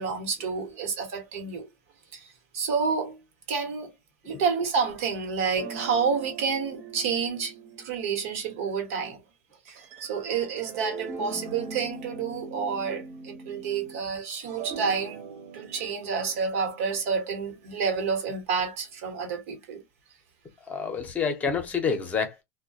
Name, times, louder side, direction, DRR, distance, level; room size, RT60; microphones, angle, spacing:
voice 1, 0.0-1.7 2.1-2.3 2.5-3.2 3.5-3.9 4.2-9.2 9.7-19.8, right 5 dB, 70° right, 1.1 m, -29 dB
sound 1, 5.6-8.7 9.7-14.0 14.3-18.5, right 4 dB, 45° right, 1.0 m, -42 dB
voice 2, 20.7-22.4, left 6 dB, 20° left, 0.8 m, -28 dB
2.2 x 2.2 x 2.6 m
supercardioid pair, 135°, 8 cm